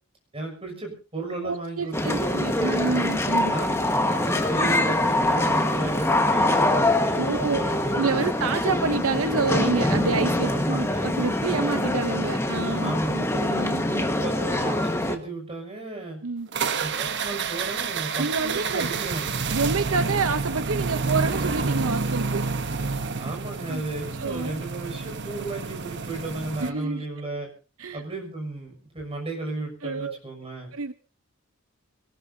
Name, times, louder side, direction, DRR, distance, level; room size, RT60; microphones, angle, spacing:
voice 1, 0.3-2.4 3.4-8.3 10.4-11.1 12.8-13.2 13.9-16.2 16.8-19.4 23.2-27.5 27.9-30.7, right 2 dB, 25° right, 2 dB, 6.6 m, -34 dB
voice 2, 1.4-3.5 7.2-7.6 7.9-14.1 16.2-16.5 18.2-18.9 19.5-22.4 23.7-23.8 24.2-24.6 26.6-27.0 27.8-28.0 29.8-30.2 30.7-30.9, right 4 dB, 70° right, 10 dB, 0.8 m, -28 dB
sound 1, 1.9-15.2, left 1 dB, 10° left, 1.5 m, -24 dB
sound 2, 16.5-26.7, right 4 dB, 50° right, 1.1 m, -29 dB
25.0 x 19.0 x 2.8 m, 0.36 s
head